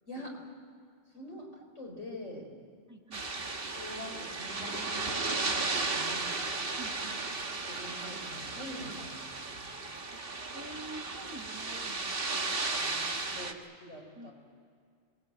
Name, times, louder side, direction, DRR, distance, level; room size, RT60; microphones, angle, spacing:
voice 1, 0.1-0.4 1.1-2.5 3.7-6.3 7.7-9.7 13.4-14.3, left 1 dB, 85° left, 0 dB, 5.2 m, -44 dB
voice 2, 2.9-3.3 6.8-7.3 10.1-10.2 10.5-13.5 14.2-14.3, right 1 dB, 15° right, 1 dB, 1.8 m, -48 dB
sound 1, 3.1-13.5, right 3 dB, 50° right, 1.7 m, -35 dB
25.5 x 21.0 x 9.1 m, 2.2 s
omnidirectional pair, 1.2 m